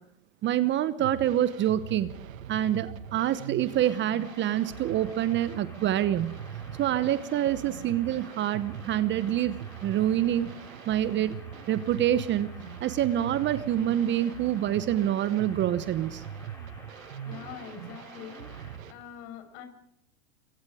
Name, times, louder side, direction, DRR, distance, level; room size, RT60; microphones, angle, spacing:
voice 1, 0.4-2.1 2.5-6.4 6.8-10.5 10.9-11.4 11.7-12.5 12.8-16.2, right 11 dB, 25° right, 14 dB, 1.0 m, -26 dB
sound 1, 1.0-18.9, right 9 dB, 75° right, 1.6 m, -42 dB
sound 2, 3.8-18.8, left 1 dB, 10° left, 7.2 m, -52 dB
voice 2, 17.2-18.5 18.9-19.7, left 9 dB, 50° left, 8 dB, 6.0 m, -43 dB
26.0 x 24.0 x 4.9 m, 0.77 s
hypercardioid pair, 110°, 40 cm